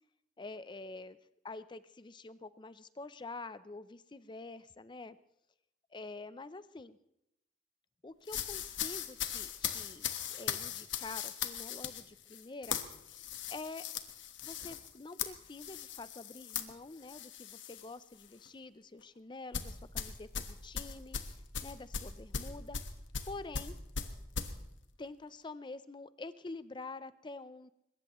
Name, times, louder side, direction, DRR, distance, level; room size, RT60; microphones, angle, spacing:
voice 1, 0.4-1.2 1.4-5.2 5.9-7.0 8.0-12.8 13.5-13.8 14.4-21.2 21.6-22.8 23.3-23.8 25.0-27.7, left 3 dB, 25° left, 14 dB, 0.5 m, -47 dB
sound 1, 8.3-17.9 18.2-18.5 19.5-24.5, left 7 dB, 80° left, 1.3 m, -39 dB
22.5 x 21.0 x 3.0 m, 0.81 s
head